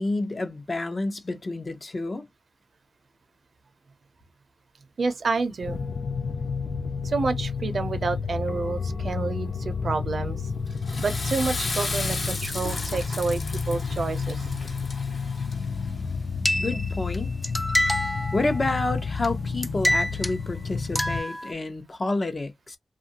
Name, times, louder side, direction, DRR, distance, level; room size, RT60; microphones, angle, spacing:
voice 1, 0.0-2.2 16.6-17.5 18.3-22.8, left 2 dB, 40° left, 0.7 m, -29 dB
voice 2, 5.0-5.8 7.0-10.4 11.0-14.4, right 4 dB, 65° right, 0.6 m, -29 dB
sound 1, 5.6-21.2, left 5 dB, 75° left, 0.4 m, -31 dB
Water / Toilet flush, 10.7-15.9, left 3 dB, 60° left, 1.1 m, -34 dB
sound 2, 16.5-17.2 17.4-18.8 19.2-19.3 19.6-20.4 21.0-21.5, equal, 5° left, 0.3 m, -26 dB
2.6 x 2.4 x 2.8 m
cardioid pair, 70°, 0 cm